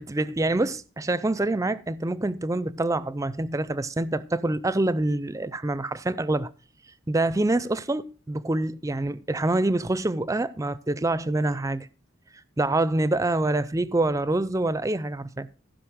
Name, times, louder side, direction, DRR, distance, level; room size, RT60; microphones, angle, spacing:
voice 1, 0.0-6.5 7.1-11.9 12.6-15.5, right 2 dB, 15° right, 0.4 m, -26 dB
15.5 x 5.2 x 6.2 m
head